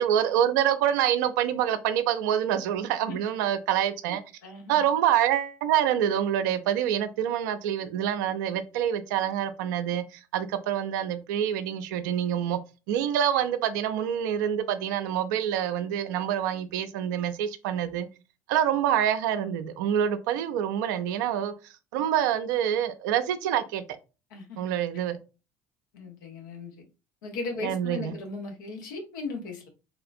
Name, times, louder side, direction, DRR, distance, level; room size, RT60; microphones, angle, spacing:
voice 1, 0.0-4.2 4.7-12.6 12.9-18.1 18.5-21.5 21.9-23.8 24.6-25.2 27.6-28.1, right 10 dB, 75° right, 0.4 m, -26 dB
voice 2, 4.4-4.8 24.3-24.6 25.9-26.7 27.2-29.7, left 3 dB, 80° left, 0.9 m, -37 dB
3.5 x 2.4 x 2.5 m
hypercardioid pair, 60°, 10 cm